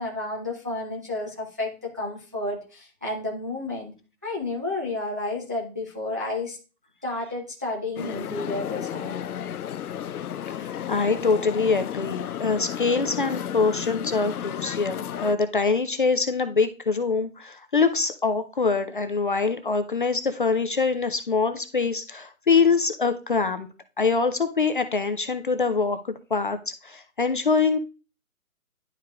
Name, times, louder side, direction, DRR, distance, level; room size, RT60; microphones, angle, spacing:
voice 1, 0.0-3.9 4.2-6.6 7.0-9.2, left 2 dB, 15° right, -4 dB, 0.5 m, -31 dB
sound 1, 8.0-15.4, left 9 dB, 90° left, 0.5 m, -33 dB
voice 2, 10.6-23.7 24.0-26.0 26.3-27.8, left 4 dB, 40° left, 9 dB, 0.5 m, -24 dB
10.5 x 4.9 x 2.3 m, 0.34 s
hypercardioid pair, 150°, 43 cm